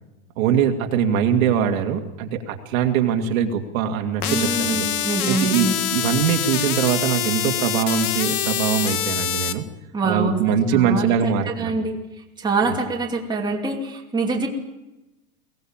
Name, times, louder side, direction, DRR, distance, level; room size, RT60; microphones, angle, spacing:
voice 1, 0.4-4.9 5.3-9.6 10.0-11.9 12.7-12.8, right 8 dB, 65° right, 3 dB, 2.6 m, -22 dB
sound 1, 4.2-9.5, left 10 dB, 85° left, 1.8 m, -25 dB
voice 2, 4.3-5.8 9.9-12.0 12.4-14.5, right 3 dB, 10° right, -1 dB, 2.7 m, -25 dB
23.0 x 17.5 x 7.4 m, 1.0 s
supercardioid pair, 145°, 43 cm